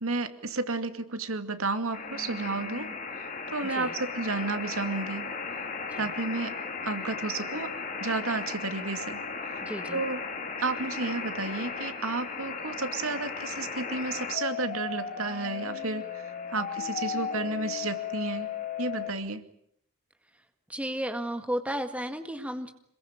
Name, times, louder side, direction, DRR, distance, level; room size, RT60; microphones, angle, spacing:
voice 1, 0.0-2.9 3.2-5.3 6.0-9.6 9.9-10.2 10.6-18.5 18.8-19.5, right 3 dB, 80° right, 8 dB, 2.4 m, -32 dB
sound 1, 1.9-19.1, left 5 dB, 35° left, 3.7 m, -36 dB
voice 2, 3.6-3.9 5.9-6.1 9.6-10.0 20.7-22.7, equal, 5° right, 6 dB, 1.9 m, -33 dB
27.0 x 22.5 x 8.9 m, 0.68 s
head